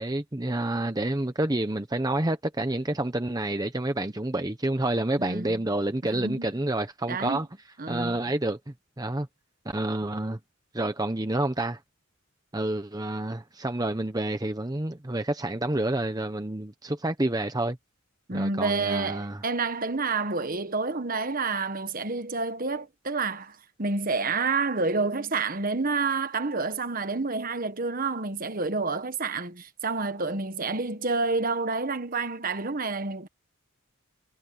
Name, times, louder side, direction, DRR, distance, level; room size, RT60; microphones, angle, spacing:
voice 1, 0.0-7.5 7.9-8.6 9.0-9.3 9.7-10.4 10.7-11.8 12.5-17.8 18.3-19.4, right 1 dB, 15° right, 0.9 m, -28 dB
voice 2, 5.2-5.6 6.1-6.5 7.1-7.4 7.8-8.2 18.3-33.3, right 3 dB, 40° right, 1.3 m, -29 dB
head